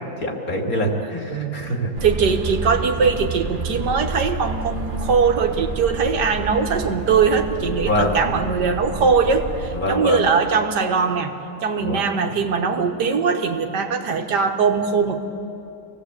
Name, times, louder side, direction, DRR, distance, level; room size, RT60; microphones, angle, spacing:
voice 1, 0.2-1.9 7.8-8.2 9.7-10.2 11.8-12.1, left 1 dB, 55° left, 1 dB, 3.0 m, -24 dB
sound 1, 2.0-9.8, right 4 dB, 35° right, 1.1 m, -30 dB
voice 2, 2.0-11.3 11.6-15.2, right 5 dB, 85° right, 5 dB, 1.9 m, -21 dB
26.5 x 18.0 x 8.2 m, 2.7 s
omnidirectional pair, 1.8 m